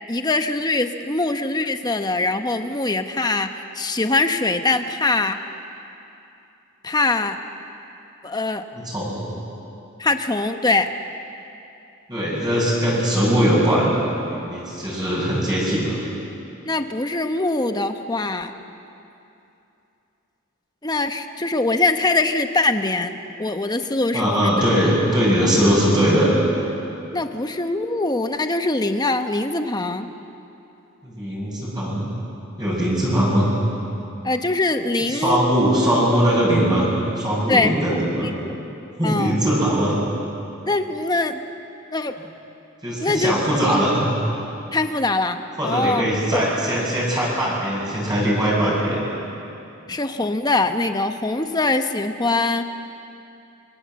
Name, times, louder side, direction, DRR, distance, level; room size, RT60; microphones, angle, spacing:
voice 1, 0.1-5.4 6.8-7.4 8.2-8.6 10.0-10.9 16.6-18.5 20.8-24.5 27.1-30.1 34.2-35.4 37.5-37.7 38.2-38.5 39.0-39.4 40.7-41.4 41.9-42.1 43.0-43.3 44.7-46.0 46.3-46.4 49.9-52.7, left 2 dB, 20° left, 7 dB, 1.1 m, -22 dB
voice 2, 8.7-9.2 12.1-14.0 14.2-16.0 24.1-26.4 31.0-32.1 32.6-33.5 35.1-36.9 37.2-38.3 39.0-40.0 42.8-44.1 45.6-49.0, equal, 20° right, -5 dB, 6.7 m, -20 dB
25.5 x 23.0 x 7.6 m, 2.8 s
head